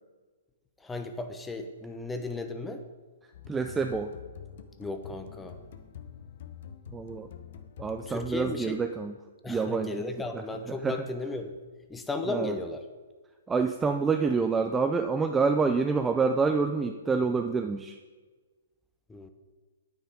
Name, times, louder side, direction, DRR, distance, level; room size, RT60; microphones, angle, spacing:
voice 1, 0.8-2.8 4.8-5.6 8.1-8.8 9.4-11.6 11.9-12.8 19.1-19.3, left 2 dB, 10° left, 7 dB, 0.9 m, -35 dB
sound 1, 3.3-9.0, left 8 dB, 55° left, 0.9 m, -46 dB
voice 2, 3.5-4.1 6.9-7.3 7.8-9.2 9.5-10.1 10.3-11.0 12.3-12.6 13.5-18.0, right 4 dB, 10° right, 6 dB, 0.5 m, -27 dB
9.6 x 9.0 x 5.1 m, 1.4 s
figure-of-eight pair, 125°, 0 cm